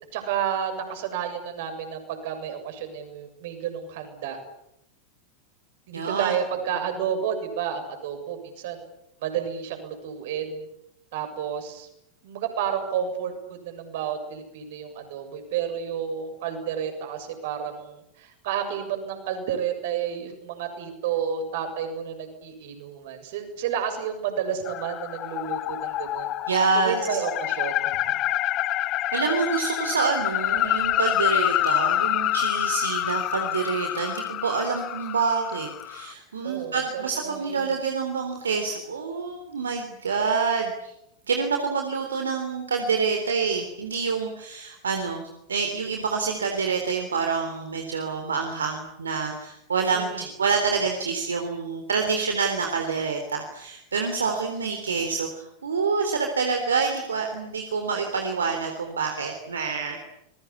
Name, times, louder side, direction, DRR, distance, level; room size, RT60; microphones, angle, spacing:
voice 1, 0.1-4.4 5.9-8.8 9.2-10.7 11.1-11.9 12.2-26.3 26.8-28.2 36.4-37.8 49.9-50.3, right 8 dB, 50° right, 7 dB, 7.0 m, -31 dB
voice 2, 5.9-6.3 26.5-27.2 29.1-40.9 41.3-60.0, right 5 dB, 70° right, 4 dB, 3.7 m, -27 dB
sound 1, 24.7-36.1, left 14 dB, 35° left, 1.3 m, -27 dB
26.5 x 22.0 x 8.6 m, 0.79 s
figure-of-eight pair, 90°, 0 cm